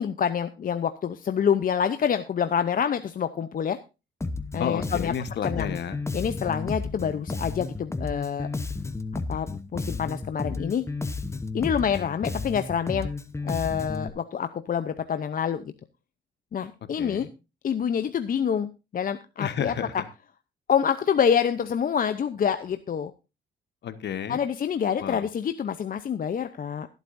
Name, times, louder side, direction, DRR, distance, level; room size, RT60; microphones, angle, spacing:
voice 1, 0.0-3.8 4.5-5.1 5.4-5.7 6.1-8.5 9.3-10.8 11.5-13.1 13.4-15.7 16.5-17.3 17.6-19.7 20.7-23.1 24.3-26.9, left 7 dB, 45° left, 10 dB, 0.7 m, -27 dB
Bass guitar, 4.2-14.1, left 3 dB, 15° left, 0.9 m, -32 dB
voice 2, 4.6-6.0 17.0-17.3 19.4-19.9 23.8-24.4 25.0-25.3, left 8 dB, 60° left, 12 dB, 1.3 m, -31 dB
21.0 x 8.2 x 2.6 m, 0.28 s
cardioid pair, 90°, 20 cm